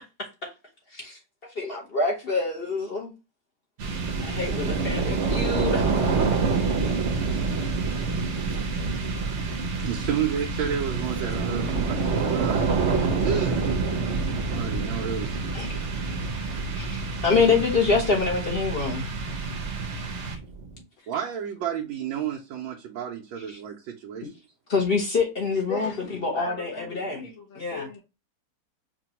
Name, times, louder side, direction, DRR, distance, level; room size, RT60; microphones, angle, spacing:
voice 1, 0.2-0.5 0.9-3.1 4.2-5.9 15.5-16.1 16.7-19.1 23.5-23.6 24.7-27.2 27.5-27.9, left 4 dB, 45° left, 0.7 m, -26 dB
sound 1, 3.8-20.7, right 4 dB, 55° right, 0.8 m, -27 dB
voice 2, 9.0-12.7 13.2-13.6 14.5-16.3 21.1-24.3, right 8 dB, 90° right, 1.4 m, -32 dB
voice 3, 25.5-28.0, left 6 dB, 90° left, 1.6 m, -39 dB
5.0 x 2.3 x 2.8 m
omnidirectional pair, 2.1 m